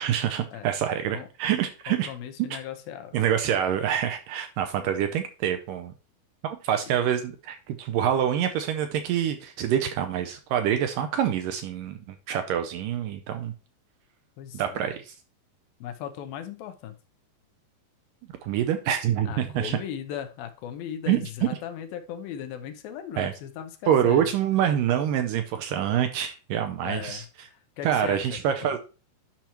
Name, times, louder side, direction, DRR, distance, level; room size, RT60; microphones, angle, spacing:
voice 1, 0.0-2.1 3.1-5.9 6.4-13.5 14.5-15.1 18.4-19.8 21.1-21.2 23.2-23.3 23.9-27.2 27.8-28.8, right 9 dB, 75° right, 7 dB, 2.1 m, -26 dB
voice 2, 1.9-3.3 14.4-14.9 15.8-17.0 19.3-24.3 26.8-28.8, left 9 dB, 80° left, 8 dB, 2.4 m, -38 dB
10.5 x 5.8 x 3.0 m, 0.34 s
omnidirectional pair, 4.4 m